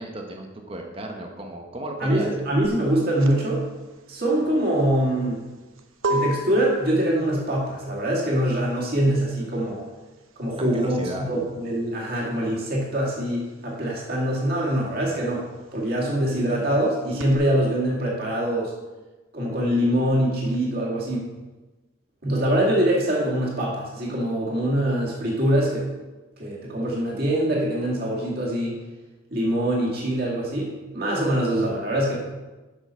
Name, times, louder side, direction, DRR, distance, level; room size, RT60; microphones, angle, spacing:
voice 1, 0.0-2.3 10.6-11.3, right 1 dB, 25° right, 2 dB, 0.9 m, -34 dB
voice 2, 2.0-3.6 4.1-5.4 6.1-9.8 10.4-15.4 15.7-18.7 19.3-21.3 22.2-25.9 26.4-28.8 29.3-32.1, right 1 dB, 45° right, -4 dB, 2.1 m, -24 dB
sound 1, 2.6-12.9 13.2-17.4, right 1 dB, 85° right, 0.8 m, -33 dB
7.4 x 6.2 x 5.5 m, 1.2 s
head